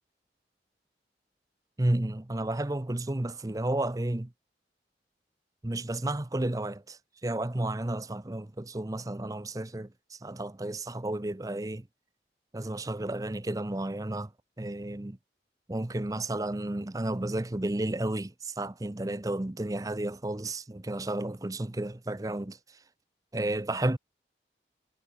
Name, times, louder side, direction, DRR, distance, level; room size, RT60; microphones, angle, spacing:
voice 1, 1.8-4.3 5.6-11.9 12.5-14.3 14.6-15.2 15.7-22.8 23.3-24.0, right 1 dB, 20° right, 0.6 m, -32 dB
head